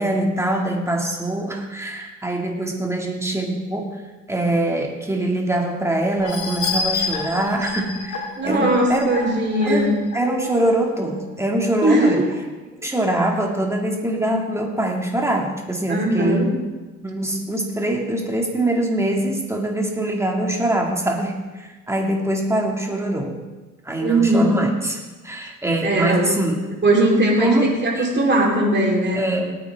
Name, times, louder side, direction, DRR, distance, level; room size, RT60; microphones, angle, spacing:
voice 1, 0.0-4.0 4.3-9.1 9.7-12.3 12.7-16.5 17.0-23.4 23.8-25.0 25.2-26.6 27.4-28.1 29.1-29.6, right 1 dB, 10° right, 0 dB, 2.5 m, -23 dB
sound 1, 6.2-10.7 11.2-11.3 11.6-11.7, left 4 dB, 75° left, 3.0 m, -29 dB
voice 2, 8.4-9.9 11.8-12.2 15.9-16.5 24.0-24.6 25.8-26.3 26.8-27.6 27.8-29.2, right 1 dB, 35° right, -2 dB, 4.2 m, -19 dB
19.0 x 8.9 x 3.7 m, 1.2 s
cardioid pair, 90°, 30 cm